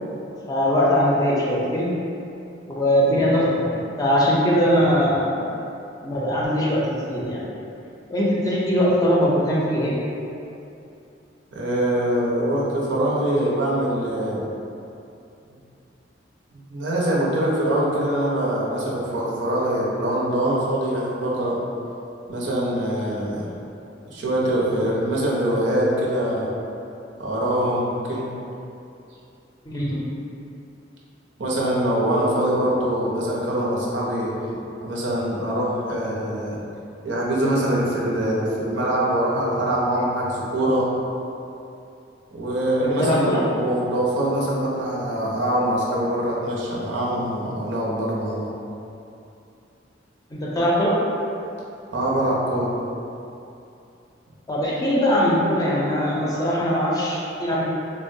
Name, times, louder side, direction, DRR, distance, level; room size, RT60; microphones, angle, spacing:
voice 1, 0.5-1.9 2.7-3.7 4.0-5.4 6.0-7.4 8.1-10.0 29.7-30.0 42.8-43.5 50.3-51.0 54.5-57.7, equal, 20° left, -5 dB, 0.4 m, -21 dB
voice 2, 11.5-14.5 16.5-21.6 22.3-23.5 24.1-26.5 27.2-28.3 31.4-34.3 34.8-36.6 37.0-40.9 42.3-48.5 51.9-52.7, right 1 dB, 90° right, -5 dB, 0.6 m, -23 dB
3.7 x 2.0 x 2.6 m, 2.7 s
head